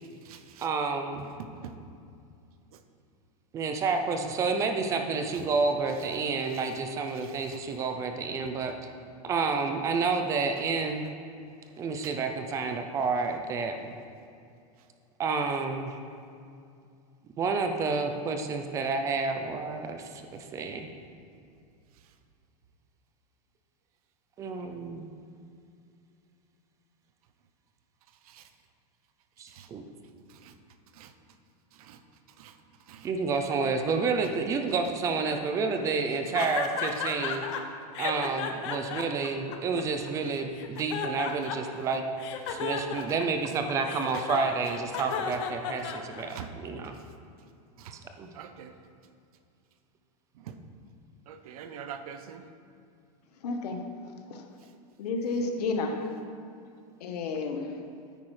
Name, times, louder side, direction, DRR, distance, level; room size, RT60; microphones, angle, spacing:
voice 1, 0.0-0.7 1.1-1.8 2.7-2.8 5.3-5.5 6.5-6.8 7.1-7.6 8.1-8.5 12.0-12.2 21.9-22.1 28.2-28.5 29.5-29.7 30.3-30.6 30.9-31.1 31.7-32.0 32.3-33.1 34.2-34.4 40.3-40.4 42.4-42.6 43.1-43.2 44.1-44.2 45.3-45.4 45.9-46.0 46.3-46.6 46.8-47.1 47.8-48.0 48.3-48.8 50.3-50.6 51.3-52.5 54.6-54.7, right 8 dB, 70° right, 9 dB, 0.7 m, -46 dB
voice 2, 0.6-1.2 3.5-8.7 9.2-11.1 11.8-13.8 15.2-16.0 17.4-20.9 24.4-25.1 29.4-29.8 33.0-37.4 38.0-42.0 42.5-46.9 47.9-48.3, right 4 dB, 15° right, 6 dB, 0.4 m, -29 dB
sound 1, 36.3-37.6 37.9-40.1 40.5-41.8 42.2-46.5, left 7 dB, 50° left, 0.7 m, -34 dB
voice 3, 53.4-53.8 54.3-54.4 55.0-56.0 57.0-57.7, left 3 dB, 85° left, 4 dB, 1.2 m, -31 dB
9.6 x 8.7 x 3.2 m, 2.4 s
supercardioid pair, 170°, 20 cm